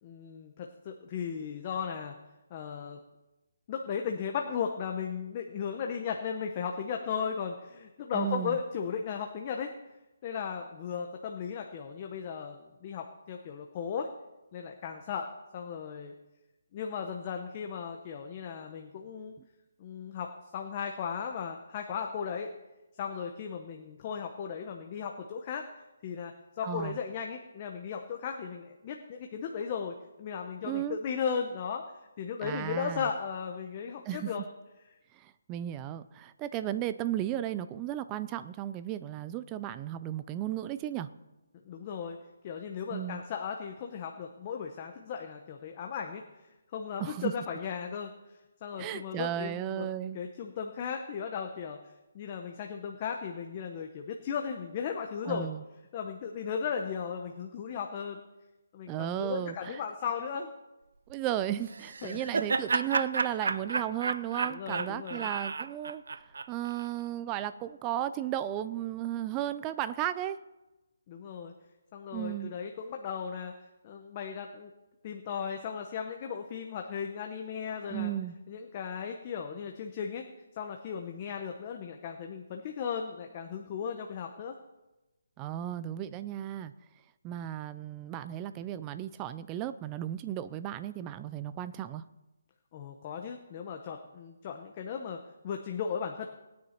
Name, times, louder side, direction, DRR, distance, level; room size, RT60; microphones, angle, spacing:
voice 1, 0.0-2.1 2.5-3.0 3.7-9.7 10.2-14.1 14.5-16.1 16.7-19.3 19.8-22.5 23.0-25.7 26.0-31.8 32.2-34.4 41.6-42.2 42.4-46.2 46.7-48.1 48.6-49.9 50.1-51.8 52.1-55.5 55.9-58.2 58.7-60.5 62.0-62.3 64.5-65.3 71.1-71.5 71.9-73.5 73.8-74.7 75.0-78.1 78.5-80.3 80.5-84.5 92.7-96.3, left 6 dB, 20° left, 3 dB, 0.8 m, -36 dB
voice 2, 8.1-8.6 26.6-27.0 30.6-31.0 32.4-33.1 34.1-34.3 35.1-41.1 42.9-43.2 47.0-47.3 48.8-50.2 55.3-55.6 58.9-59.8 61.1-66.0 66.5-70.4 72.1-72.5 77.9-78.4 85.4-86.7 87.2-92.0, right 12 dB, 15° right, 13 dB, 0.4 m, -34 dB
Laughter, 61.7-66.9, right 4 dB, 65° right, 0.6 m, -32 dB
19.0 x 9.4 x 4.4 m, 1.0 s
hypercardioid pair, 175°, 0 cm